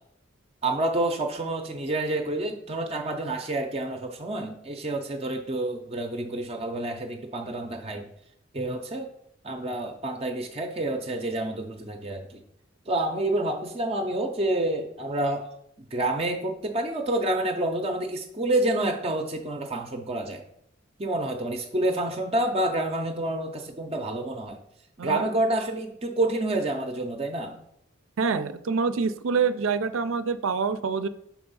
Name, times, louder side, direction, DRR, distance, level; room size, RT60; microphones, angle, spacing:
voice 1, 0.6-8.1 8.5-9.1 9.4-12.4 12.9-15.5 15.9-20.4 21.0-24.6 25.0-27.6, right 1 dB, 30° right, 3 dB, 0.5 m, -28 dB
voice 2, 28.2-31.1, right 5 dB, 80° right, 12 dB, 0.4 m, -26 dB
6.0 x 3.5 x 5.4 m, 0.74 s
head